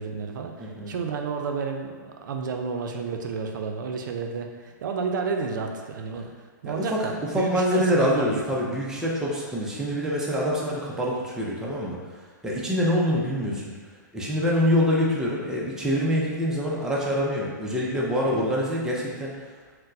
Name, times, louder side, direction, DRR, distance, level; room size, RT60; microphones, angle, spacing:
voice 1, 0.0-8.4, right 5 dB, 70° right, 3 dB, 0.4 m, -31 dB
voice 2, 0.6-0.9 6.6-7.0 7.3-12.0 12.4-13.6 14.1-19.3, equal, 5° right, -4 dB, 0.4 m, -25 dB
4.2 x 2.0 x 2.6 m, 1.4 s
hypercardioid pair, 140°, 11 cm